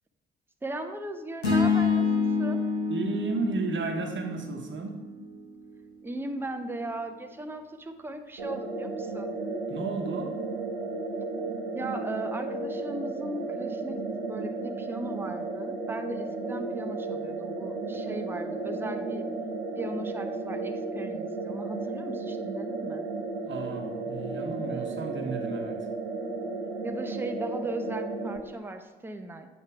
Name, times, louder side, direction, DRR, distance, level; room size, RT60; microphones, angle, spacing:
voice 1, 0.6-2.6 6.0-9.3 11.7-19.2 19.8-23.0 26.8-29.5, right 2 dB, 5° right, 7 dB, 0.5 m, -37 dB
sound 1, 1.4-5.7, left 5 dB, 85° left, 0.7 m, -28 dB
voice 2, 2.9-5.0 9.7-10.3 23.4-25.8, right 3 dB, 40° right, 3 dB, 1.0 m, -33 dB
sound 2, 8.4-28.4, right 3 dB, 85° right, 0.6 m, -34 dB
7.4 x 3.0 x 4.6 m, 1.2 s
figure-of-eight pair, 40°, 31 cm